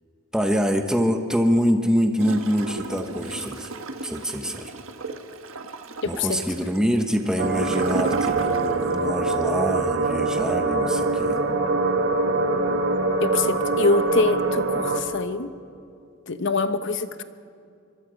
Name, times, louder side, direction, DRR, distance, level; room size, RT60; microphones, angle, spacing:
voice 1, 0.3-3.7 4.0-4.7 6.0-11.4, equal, 5° right, 5 dB, 1.0 m, -25 dB
Gurgling / Toilet flush, 2.2-9.0 9.3-9.4, right 3 dB, 75° right, 1.4 m, -34 dB
voice 2, 6.0-6.4 13.2-15.5 16.3-17.2, left 3 dB, 60° left, 11 dB, 1.0 m, -24 dB
sound 1, 7.4-15.0, right 3 dB, 55° right, 1.6 m, -23 dB
25.5 x 22.0 x 5.2 m, 2.4 s
head